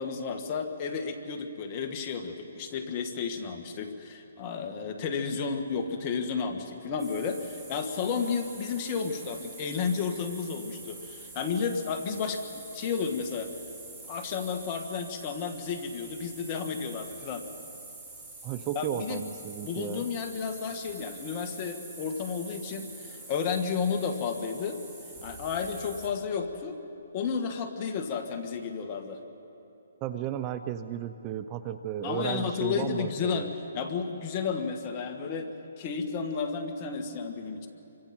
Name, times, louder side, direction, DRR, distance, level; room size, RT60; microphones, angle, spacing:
voice 1, 0.0-13.5 14.1-17.4 18.8-19.2 19.6-24.8 25.2-26.8 27.1-29.2 32.0-33.5 33.7-35.5 35.8-37.7, left 6 dB, 30° left, 5 dB, 1.8 m, -32 dB
sound 1, 7.0-26.1, right 3 dB, 10° right, 4.2 m, -46 dB
voice 2, 18.4-20.0 30.0-33.5, right 10 dB, 25° right, 11 dB, 0.6 m, -34 dB
28.0 x 24.5 x 4.5 m, 2.9 s
hypercardioid pair, 155°, 0 cm